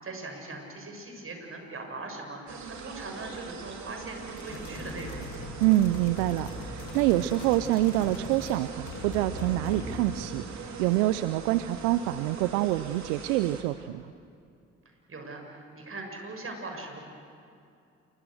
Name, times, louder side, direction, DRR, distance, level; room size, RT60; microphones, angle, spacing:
voice 1, 0.0-5.3 14.9-17.0, right 2 dB, 40° right, 3 dB, 7.0 m, -40 dB
sound 1, 2.5-13.6, right 5 dB, 55° right, 3.3 m, -42 dB
sound 2, 4.4-8.6 8.8-10.2, left 3 dB, 60° left, 3.3 m, -40 dB
voice 2, 5.6-14.0, right 15 dB, 80° right, 13 dB, 0.6 m, -26 dB
28.5 x 24.5 x 6.5 m, 2.5 s
hypercardioid pair, 45°, 34 cm